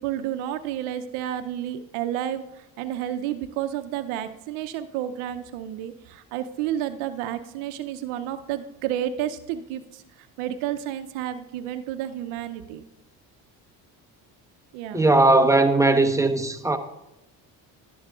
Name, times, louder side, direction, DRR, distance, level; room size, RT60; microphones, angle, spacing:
voice 1, 0.0-12.8 14.7-15.1, right 11 dB, 75° right, 0.7 m, -31 dB
voice 2, 14.9-16.8, right 2 dB, 5° right, 0.9 m, -18 dB
12.0 x 10.5 x 2.4 m
supercardioid pair, 65°, 49 cm